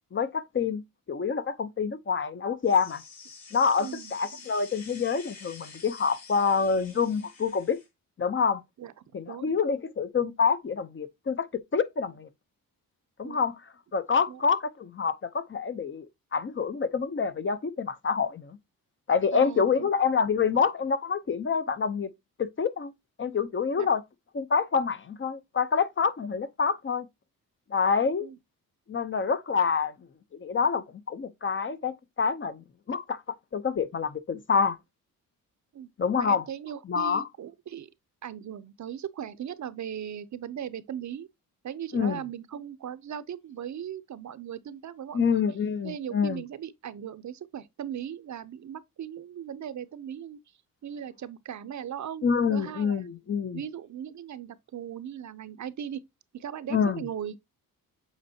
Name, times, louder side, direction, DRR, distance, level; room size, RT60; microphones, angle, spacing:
voice 1, 0.1-0.8 1.1-3.0 3.5-7.8 8.2-8.6 9.1-11.5 11.7-12.3 13.2-13.6 13.9-16.1 16.3-18.6 19.1-22.1 22.4-22.9 23.2-24.0 24.3-27.1 27.7-28.3 28.9-29.9 30.4-33.2 33.5-34.8 36.0-36.4 36.9-37.2 41.9-42.2 45.1-46.4 52.2-53.6 56.7-57.0, left 5 dB, 35° left, 0.6 m, -27 dB
sound 1, 2.6-7.9, left 5 dB, 75° left, 3.0 m, -48 dB
voice 2, 3.8-4.1 8.8-8.9 9.3-9.6 13.2-13.4 14.3-14.4 19.3-19.9 23.8-23.9 28.2-28.4 35.7-35.9 36.2-37.9 38.2-41.3 41.6-45.4 45.8-50.4 50.8-53.0 53.5-56.0 56.3-57.4, right 9 dB, 50° right, 0.6 m, -38 dB
8.0 x 4.4 x 2.7 m
cardioid pair, 90°, 36 cm